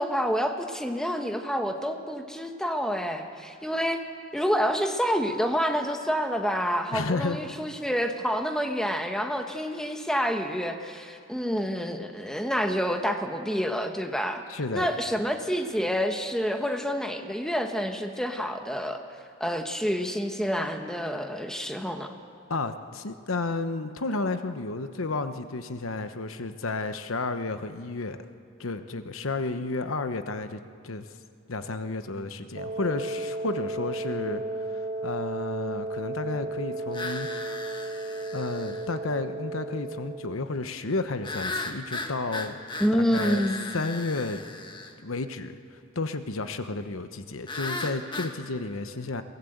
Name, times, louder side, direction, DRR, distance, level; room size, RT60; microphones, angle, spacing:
voice 1, 0.0-4.0 4.3-14.4 14.7-19.0 19.4-22.1 42.8-43.6, equal, 5° left, 5 dB, 1.3 m, -28 dB
voice 2, 6.9-7.4 14.5-14.9 22.5-28.2 28.6-31.1 31.5-37.3 38.3-42.6 43.0-43.5 43.7-44.4 45.0-45.6 45.9-49.2, left 3 dB, 85° left, 9 dB, 1.1 m, -32 dB
Wind instrument woodwind instrument, 32.5-40.4, right 2 dB, 65° right, 1.5 m, -34 dB
sound 1, 36.9-38.9 41.2-44.9 47.5-48.4, left 3 dB, 25° left, 1.3 m, -36 dB
22.5 x 18.0 x 8.0 m, 2.3 s
head